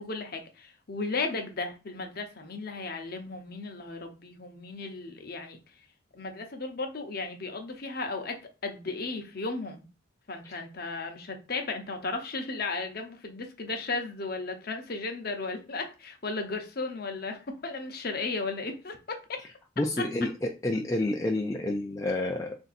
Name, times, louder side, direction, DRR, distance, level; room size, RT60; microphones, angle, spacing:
voice 1, 0.0-5.6 6.1-9.9 10.3-19.5, left 3 dB, 50° left, 0.7 m, -35 dB
voice 2, 19.8-22.6, left 2 dB, 15° left, 0.3 m, -29 dB
3.4 x 2.6 x 4.0 m
head